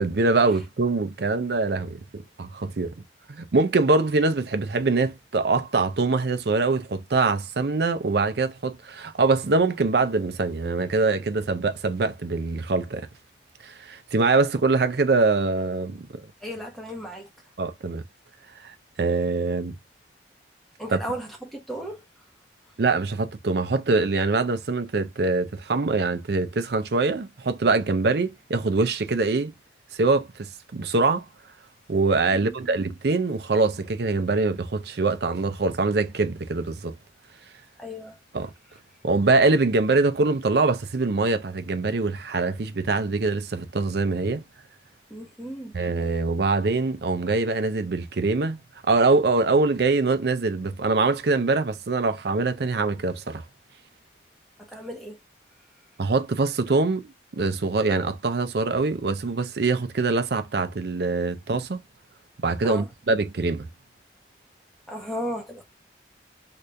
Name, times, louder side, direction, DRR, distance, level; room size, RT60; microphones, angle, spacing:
voice 1, 0.0-2.9 3.3-13.1 13.6-16.2 17.6-18.0 18.6-19.8 20.9-21.0 22.8-29.5 30.0-31.3 31.9-36.9 38.3-38.5 39.0-44.4 45.7-48.6 48.9-53.4 56.0-61.8 62.4-63.7, right 3 dB, 60° right, 0.5 m, -24 dB
voice 2, 16.4-17.3 20.8-22.0 32.3-32.8 37.8-38.2 45.1-45.7 54.6-55.2 62.6-62.9 64.9-65.6, equal, ahead, 1.0 m, -35 dB
3.3 x 3.0 x 2.5 m
head